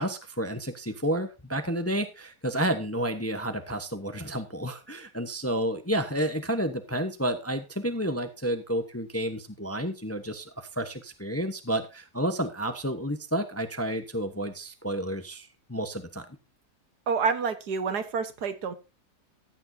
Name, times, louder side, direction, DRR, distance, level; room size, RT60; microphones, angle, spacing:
voice 1, 0.0-16.3, right 1 dB, 10° left, 9 dB, 0.8 m, -30 dB
voice 2, 17.1-18.7, right 5 dB, 80° right, 10 dB, 1.9 m, -28 dB
14.5 x 8.7 x 2.7 m, 0.29 s
omnidirectional pair, 1.7 m